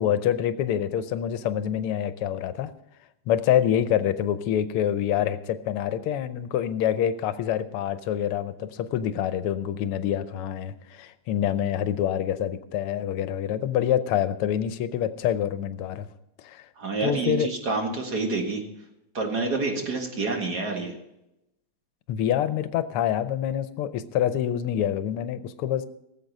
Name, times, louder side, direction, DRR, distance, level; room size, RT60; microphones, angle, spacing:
voice 1, 0.0-2.7 3.3-16.1 16.4-16.7 17.0-17.5 22.1-25.9, left 10 dB, 90° left, 12 dB, 1.7 m, -26 dB
voice 2, 16.8-18.6 19.1-20.9, right 3 dB, 50° right, 3 dB, 2.2 m, -28 dB
18.0 x 7.7 x 5.4 m, 0.87 s
omnidirectional pair, 2.4 m